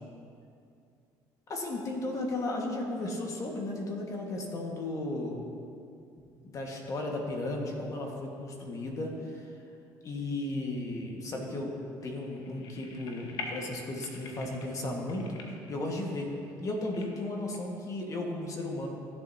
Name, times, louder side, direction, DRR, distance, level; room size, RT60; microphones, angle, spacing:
voice 1, 1.5-5.4 6.2-9.5 10.0-11.7 12.0-15.4 15.7-16.3 16.6-18.9, left 2 dB, 45° left, 0 dB, 1.6 m, -35 dB
sound 1, 12.0-17.6, left 3 dB, 65° left, 1.2 m, -46 dB
15.0 x 7.5 x 2.8 m, 2.5 s
supercardioid pair, 90°, 8 cm